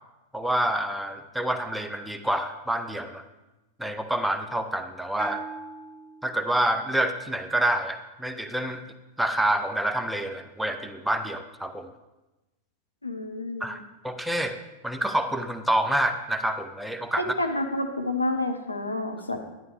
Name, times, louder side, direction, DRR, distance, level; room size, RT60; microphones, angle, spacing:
voice 1, 0.3-3.2 3.8-5.4 6.2-8.8 9.2-11.9 13.6-14.6 14.8-17.4, right 1 dB, 5° right, 8 dB, 0.6 m, -27 dB
Bell, 5.2-6.8, right 3 dB, 20° left, 1.5 m, -39 dB
voice 2, 13.0-13.7 17.2-19.4, left 1 dB, 85° left, 5 dB, 0.9 m, -29 dB
11.0 x 10.5 x 3.4 m, 1.1 s
figure-of-eight pair, 90°, 0 cm